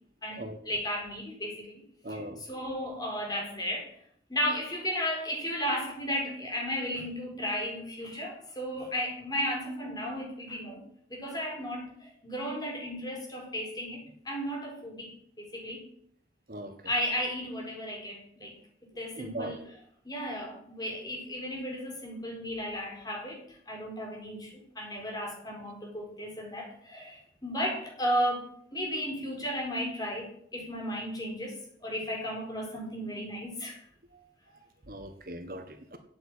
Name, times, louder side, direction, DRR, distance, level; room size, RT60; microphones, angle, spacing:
voice 1, 0.2-1.8 2.1-3.9 4.3-10.8 11.1-15.8 16.8-18.6 19.0-19.6 20.0-31.6 31.8-33.8, equal, 20° left, -1 dB, 4.3 m, -34 dB
voice 2, 2.0-2.4 16.5-16.7 19.2-19.5 34.9-36.0, right 1 dB, 55° right, 7 dB, 1.3 m, -39 dB
9.1 x 8.5 x 8.7 m, 0.65 s
head